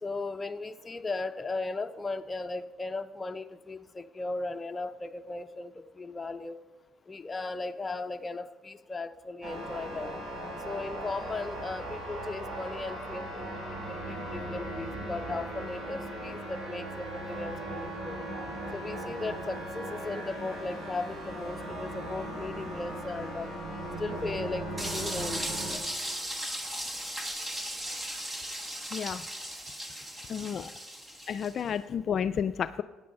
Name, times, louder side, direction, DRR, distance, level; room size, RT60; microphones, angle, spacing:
voice 1, 0.0-6.6 7.1-10.1 10.6-18.2 18.7-23.5 24.0-25.4, left 3 dB, 20° left, 8 dB, 0.7 m, -37 dB
sound 1, 9.4-25.8, right 1 dB, 55° right, 5.1 m, -38 dB
sound 2, 24.8-31.6, right 1 dB, 20° right, 1.5 m, -37 dB
voice 2, 28.9-29.2 30.3-30.7 31.3-32.8, left 8 dB, 50° left, 12 dB, 0.3 m, -31 dB
14.5 x 9.5 x 5.4 m, 1.3 s
cardioid pair, 95°, 0 cm